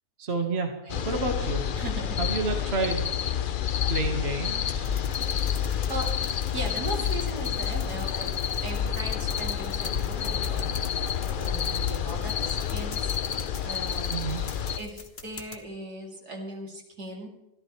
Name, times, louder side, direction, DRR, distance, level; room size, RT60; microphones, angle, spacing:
voice 1, 0.2-0.7 1.0-1.6 2.2-3.1 3.9-4.9 14.1-14.4, right 3 dB, 40° right, 3 dB, 1.9 m, -29 dB
sound 1, 0.9-14.8, left 8 dB, 65° left, 0.5 m, -29 dB
voice 2, 1.8-2.2 5.9-6.1 6.5-8.4 8.6-10.8 11.4-13.2 13.6-14.2 14.8-17.3, right 1 dB, 80° right, 0 dB, 3.8 m, -38 dB
sound 2, 4.8-15.6, left 4 dB, 40° left, 1.5 m, -43 dB
25.0 x 14.0 x 3.3 m, 0.89 s
omnidirectional pair, 1.7 m